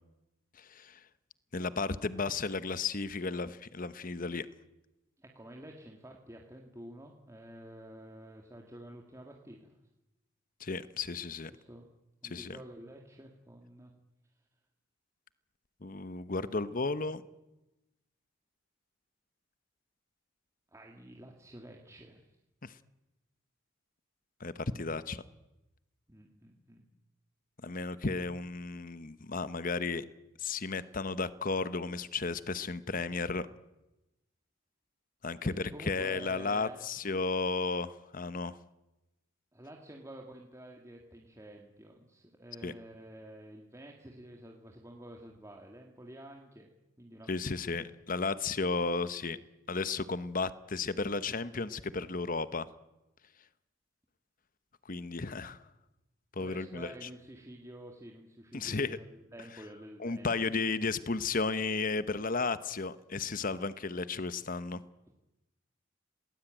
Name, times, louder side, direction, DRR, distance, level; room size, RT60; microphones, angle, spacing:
voice 1, 0.6-1.0 1.5-4.5 10.6-11.5 12.2-12.6 15.8-17.2 22.6-22.7 24.4-25.2 27.6-30.0 30.4-33.5 35.2-38.6 42.6-42.7 47.3-49.4 49.7-52.7 54.9-55.6 56.4-57.1 58.5-59.0 60.0-64.8, left 4 dB, 45° left, 14 dB, 1.0 m, -34 dB
voice 2, 5.2-9.8 11.5-11.9 12.2-13.9 20.7-22.3 26.1-26.8 35.4-36.8 39.5-46.7 47.0-47.7 56.4-60.3, right 1 dB, 15° right, 1 dB, 2.1 m, -50 dB
28.0 x 19.0 x 9.1 m, 1.0 s
head